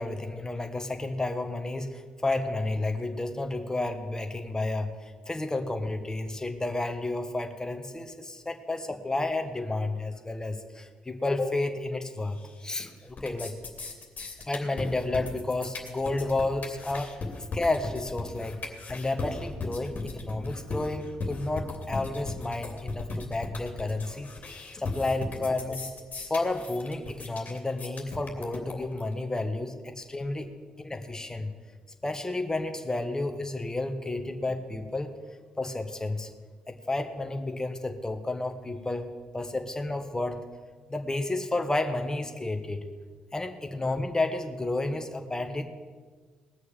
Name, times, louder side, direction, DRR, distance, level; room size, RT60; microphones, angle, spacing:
voice 1, 0.0-13.5 14.5-17.1 17.5-24.3 24.8-25.9 26.3-30.5 30.8-31.5 32.0-35.1 35.6-36.3 36.7-39.1 39.3-40.4 40.9-42.9 43.3-45.6, left 2 dB, 15° left, 6 dB, 1.7 m, -31 dB
sound 1, 12.4-12.8 13.1-29.1, left 3 dB, 45° left, 2.8 m, -37 dB
19.5 x 6.6 x 7.4 m, 1.5 s
hypercardioid pair, 45°, 4 cm